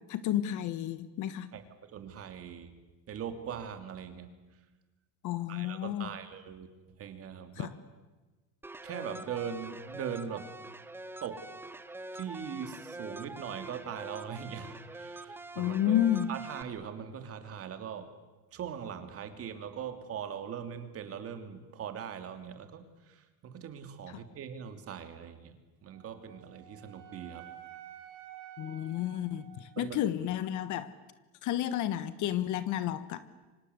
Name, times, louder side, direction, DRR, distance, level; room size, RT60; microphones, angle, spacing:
voice 1, 0.1-1.5 5.2-6.1 7.6-7.7 15.6-16.3 28.6-30.9 31.4-33.3, left 11 dB, 45° left, 14 dB, 1.4 m, -31 dB
voice 2, 1.5-2.7 3.1-4.3 5.5-6.7 7.0-7.7 8.8-10.5 11.2-11.5 12.1-16.0 16.3-18.1 18.5-25.6 25.8-27.5 29.8-30.0, right 8 dB, 35° right, 8 dB, 3.0 m, -41 dB
sound 1, 8.6-16.6, right 2 dB, 5° right, 1.0 m, -45 dB
Wind instrument woodwind instrument, 25.9-30.1, right 11 dB, 50° right, 4.2 m, -51 dB
28.0 x 25.0 x 8.2 m, 1.2 s
supercardioid pair, 140°, 42 cm